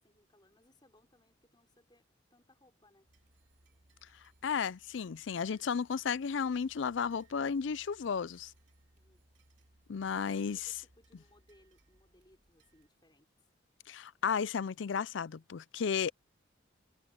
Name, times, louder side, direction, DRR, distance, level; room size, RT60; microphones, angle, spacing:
voice 1, 0.0-2.0 2.3-3.1 8.9-9.2 10.1-13.3, left 1 dB, 20° left, 4.5 m, -66 dB
sound 1, 3.1-12.9, right 1 dB, 65° right, 3.0 m, -67 dB
voice 2, 4.4-8.5 9.9-10.7 13.9-16.1, left 6 dB, 70° left, 0.4 m, -33 dB
head